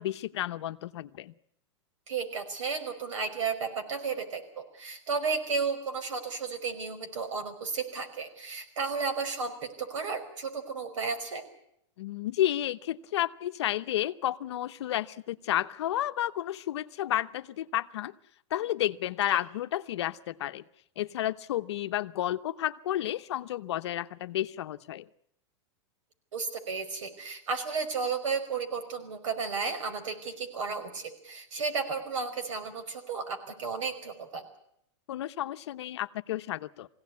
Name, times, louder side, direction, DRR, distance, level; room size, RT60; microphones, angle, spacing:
voice 1, 0.0-1.3 12.0-18.1 18.5-20.6 21.0-25.1 35.1-36.9, left 13 dB, 60° left, 11 dB, 0.9 m, -31 dB
voice 2, 2.1-9.5 9.8-11.4 26.3-34.4, right 5 dB, 85° right, 7 dB, 5.2 m, -33 dB
23.0 x 16.5 x 9.6 m, 0.72 s
supercardioid pair, 175°, 16 cm